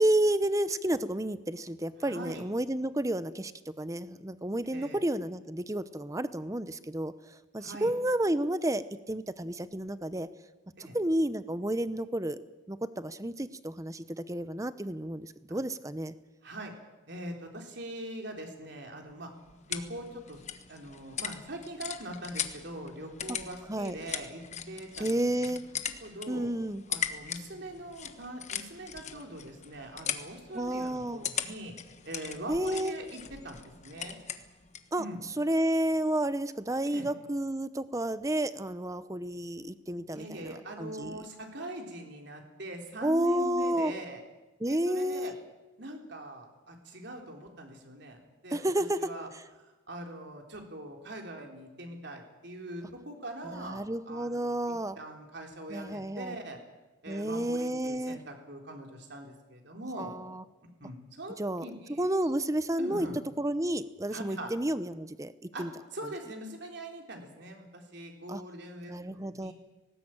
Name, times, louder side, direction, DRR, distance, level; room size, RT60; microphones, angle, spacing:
voice 1, 0.0-7.1 7.5-10.3 10.9-12.4 12.7-16.1 23.7-23.9 25.0-25.6 26.3-26.8 30.5-31.2 32.5-32.9 34.9-35.0 35.4-41.2 43.0-43.9 44.6-45.3 48.5-49.1 53.5-55.0 55.7-56.4 57.1-58.2 60.0-60.4 61.4-61.6 62.0-63.1 63.4-65.3 65.6-65.7 68.3-68.4 68.9-69.5, right 1 dB, 15° right, 13 dB, 0.8 m, -31 dB
voice 2, 2.0-2.5 4.7-5.0 7.6-7.9 10.8-11.0 16.4-16.7 17.1-19.3 19.6-20.4 20.7-25.1 25.3-25.5 26.0-26.5 26.9-31.7 32.1-34.2 35.0-35.2 36.9-37.1 40.1-44.2 44.6-45.3 45.8-48.7 49.0-49.3 49.6-56.6 57.0-60.1 60.8-62.0 62.8-63.2 64.1-64.5 65.5-69.5, right 1 dB, 55° right, 2 dB, 3.8 m, -42 dB
sound 1, 19.1-34.9, left 8 dB, 35° left, 1.2 m, -40 dB
19.0 x 18.5 x 8.9 m, 1.2 s
head